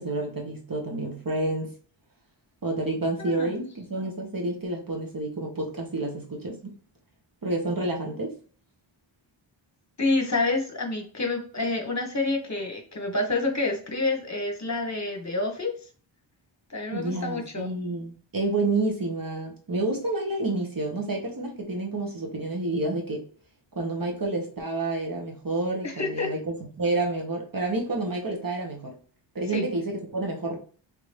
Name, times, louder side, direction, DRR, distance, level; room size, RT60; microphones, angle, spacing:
voice 1, 0.0-1.7 2.6-6.7 7.4-8.3 16.9-23.2 23.7-28.9 29.3-30.6, right 2 dB, 45° right, 1.3 m, -29 dB
voice 2, 3.2-3.5 10.0-15.7 16.7-17.7 25.8-26.3 29.5-29.7, left 3 dB, 35° left, 1.1 m, -28 dB
3.5 x 2.9 x 3.3 m
wide cardioid pair, 60°, 49 cm